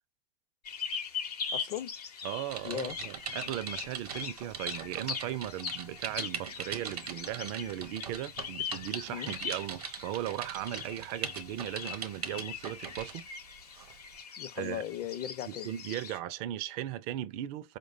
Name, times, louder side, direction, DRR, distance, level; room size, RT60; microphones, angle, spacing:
sound 1, 0.6-16.2, left 6 dB, 80° left, 0.8 m, -41 dB
voice 1, 1.5-1.9 2.6-3.0 9.1-9.3 14.4-15.7, left 11 dB, 40° left, 0.5 m, -37 dB
voice 2, 2.2-13.3 14.6-14.8 15.5-17.8, right 12 dB, 50° right, 0.4 m, -37 dB
Typing, 2.5-13.2 13.8-14.0, right 7 dB, 75° right, 0.8 m, -41 dB
4.6 x 2.2 x 2.5 m
figure-of-eight pair, 85°, 20 cm